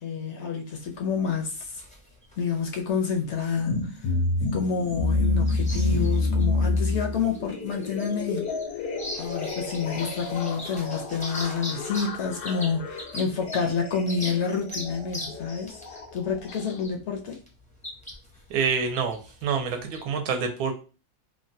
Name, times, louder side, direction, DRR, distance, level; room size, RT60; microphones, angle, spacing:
voice 1, 0.0-1.8 2.4-3.9 4.5-8.5 9.2-17.4, left 6 dB, 65° left, 0.7 m, -29 dB
sound 1, 0.7-20.0, left 1 dB, 10° left, 0.4 m, -42 dB
sound 2, 3.6-16.8, left 3 dB, 90° left, 1.2 m, -29 dB
voice 2, 18.5-20.7, right 6 dB, 85° right, 1.1 m, -27 dB
3.1 x 2.2 x 2.6 m
omnidirectional pair, 1.6 m